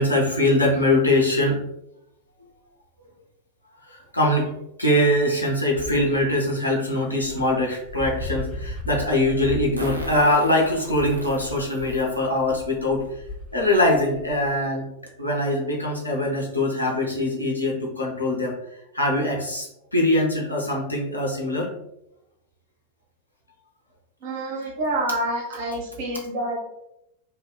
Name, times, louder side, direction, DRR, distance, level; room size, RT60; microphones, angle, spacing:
voice 1, 0.0-1.6 3.9-4.5 4.8-13.1 13.5-14.8 15.2-18.6 18.9-21.7, left 1 dB, 85° left, -2 dB, 0.6 m, -22 dB
Dog, 5.7-6.3 6.9-7.0 7.2-14.5, left 1 dB, 25° left, 0.5 m, -36 dB
Fart, 7.0-7.1 9.8-12.1 12.7-12.8 14.1-14.2 14.5-14.6 15.1-15.3, right 1 dB, 80° right, 0.4 m, -36 dB
voice 2, 24.2-26.6, right 1 dB, 50° right, -2 dB, 0.9 m, -27 dB
2.9 x 2.2 x 2.2 m, 0.83 s
figure-of-eight pair, 90°, 0 cm